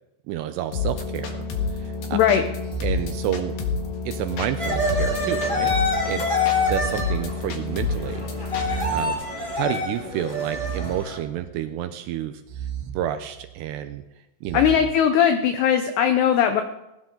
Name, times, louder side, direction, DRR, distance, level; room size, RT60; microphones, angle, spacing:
voice 1, 0.3-1.4 1.7-2.2 2.8-3.6 4.1-5.7 6.1-6.2 6.7-8.3 8.9-12.3 12.9-14.0 14.4-14.6, right 11 dB, 85° right, 8 dB, 2.4 m, -29 dB
sound 1, 0.7-9.1, left 4 dB, 60° left, 3.0 m, -29 dB
voice 2, 2.1-2.4 14.5-16.6, left 8 dB, 80° left, 7 dB, 2.4 m, -19 dB
sound 2, 2.6-3.9 4.6-5.9 6.6-7.9 8.5-9.8 10.5-11.8 12.5-13.8 14.4-14.8, right 9 dB, 70° right, 2.6 m, -36 dB
sound 3, 4.6-11.2, left 2 dB, 15° left, 1.2 m, -26 dB
19.5 x 17.5 x 3.9 m, 0.92 s
omnidirectional pair, 5.8 m